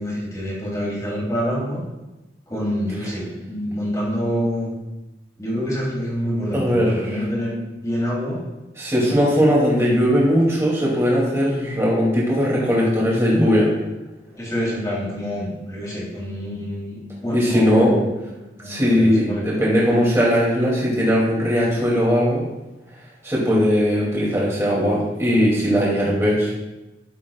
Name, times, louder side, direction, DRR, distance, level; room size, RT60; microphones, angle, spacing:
voice 1, 0.0-1.8 2.5-4.7 5.4-8.4 14.3-18.1 18.6-19.5, equal, 20° left, -5 dB, 2.8 m, -26 dB
voice 2, 6.5-7.2 8.8-13.7 17.3-17.9 18.6-22.5 23.2-26.5, equal, 15° right, -5 dB, 2.6 m, -19 dB
13.0 x 7.3 x 2.4 m, 1.0 s
head